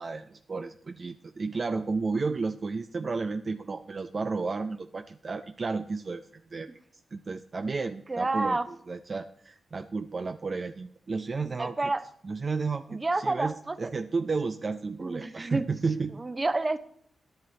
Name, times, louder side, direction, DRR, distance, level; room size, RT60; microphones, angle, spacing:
voice 1, 0.0-6.7 7.1-11.9 12.2-16.1, right 4 dB, 45° right, 8 dB, 0.5 m, -32 dB
voice 2, 8.1-8.7 11.6-12.0 12.9-13.8 15.0-15.7 16.2-16.8, right 2 dB, 25° right, 11 dB, 0.8 m, -29 dB
11.0 x 10.5 x 4.0 m, 0.67 s
cardioid pair, 75°, 0 cm